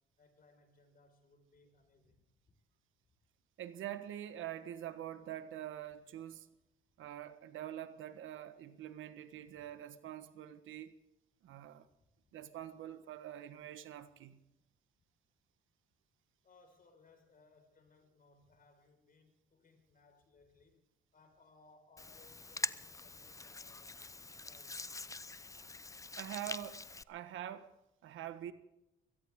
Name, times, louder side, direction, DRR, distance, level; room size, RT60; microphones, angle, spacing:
voice 1, 0.0-2.5 9.5-9.7 12.2-12.3 16.4-24.1 24.4-25.2, left 3 dB, 45° left, 5.2 m, -66 dB
voice 2, 3.6-6.5 7.0-10.9 11.4-11.9 12.3-14.4 26.2-27.7 28.0-28.5, right 11 dB, 80° right, 1.4 m, -45 dB
Hands, 22.0-27.0, left 3 dB, 15° left, 0.6 m, -44 dB
23.0 x 17.0 x 3.7 m
cardioid pair, 90°, 20 cm